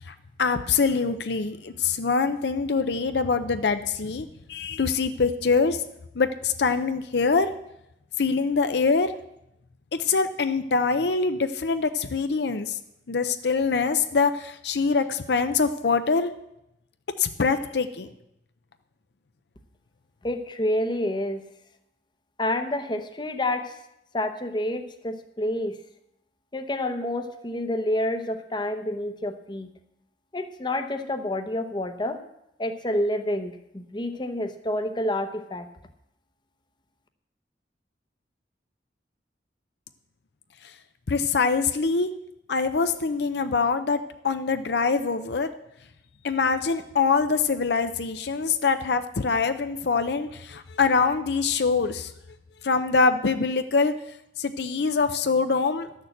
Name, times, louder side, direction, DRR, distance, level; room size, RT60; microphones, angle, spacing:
voice 1, 0.4-5.8 6.1-7.5 8.2-9.1 10.0-12.7 13.1-16.3 17.2-18.1 41.1-42.1 42.5-45.5 46.2-52.1 52.6-53.9 54.4-55.9, left 4 dB, 65° left, 9 dB, 0.6 m, -24 dB
voice 2, 20.2-21.4 22.4-23.7 24.1-25.8 26.5-29.7 30.3-32.2 32.6-35.7, left 1 dB, 25° left, 8 dB, 0.8 m, -28 dB
12.0 x 6.7 x 7.9 m, 0.83 s
head